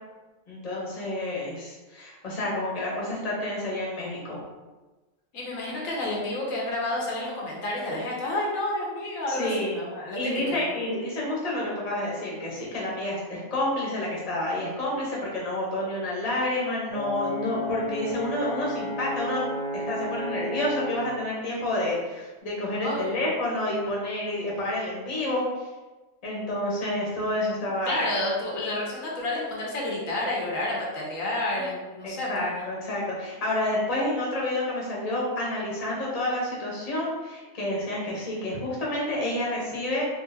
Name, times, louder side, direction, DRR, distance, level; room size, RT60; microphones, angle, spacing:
voice 1, 0.5-4.4 9.3-9.8 10.1-19.5 19.7-25.7 26.2-27.9 31.6-31.7 32.0-40.0, left 1 dB, 30° left, -5 dB, 1.0 m, -29 dB
voice 2, 5.3-10.7 22.8-23.3 27.9-32.6, left 1 dB, 80° left, -4 dB, 1.2 m, -30 dB
Brass instrument, 16.9-21.1, left 1 dB, 45° right, 0.8 m, -32 dB
3.7 x 2.9 x 2.8 m, 1.2 s
omnidirectional pair, 1.4 m